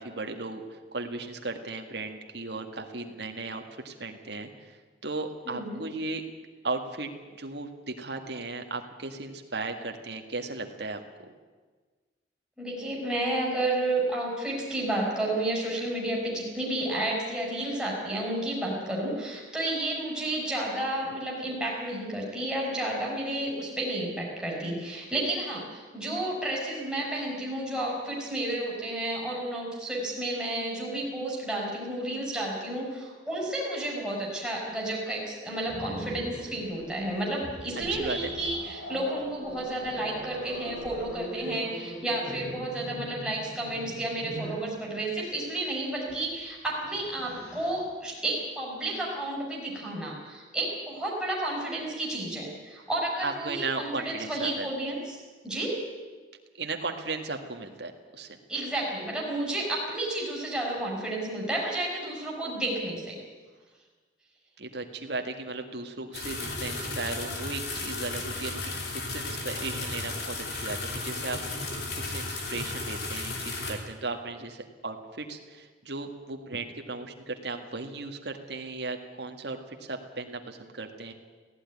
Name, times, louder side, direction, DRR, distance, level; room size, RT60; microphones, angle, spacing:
voice 1, 0.0-6.2 6.6-7.1 7.4-11.0 37.9-38.3 53.2-54.7 56.6-58.4 64.6-81.1, right 3 dB, 65° right, 4 dB, 1.9 m, -36 dB
voice 2, 5.4-5.8 12.6-55.2 55.4-55.8 58.5-63.2, right 1 dB, 5° right, -4 dB, 5.9 m, -31 dB
Growling, 35.7-44.7 46.0-46.2 46.6-47.8, equal, 75° left, 7.2 m, -41 dB
sound 1, 66.1-73.7, left 3 dB, 55° left, 3.5 m, -34 dB
16.5 x 16.0 x 9.9 m, 1.4 s
head